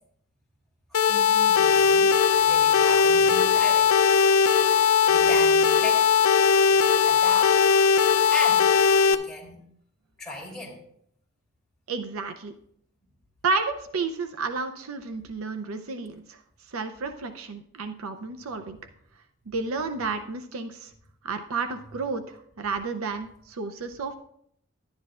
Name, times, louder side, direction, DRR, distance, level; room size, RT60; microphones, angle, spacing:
sound 1, 0.9-9.1, left 6 dB, 80° left, 0.5 m, -19 dB
voice 1, 0.9-2.1 2.4-3.9 4.6-6.1 6.7-7.6 8.3-8.7 9.1-9.6 10.2-10.8, left 1 dB, ahead, -5 dB, 3.0 m, -37 dB
voice 2, 11.9-12.5 13.4-16.4 16.7-18.8 19.5-20.9 21.2-24.2, right 4 dB, 70° right, 7 dB, 0.6 m, -31 dB
11.5 x 9.7 x 2.4 m, 0.69 s
head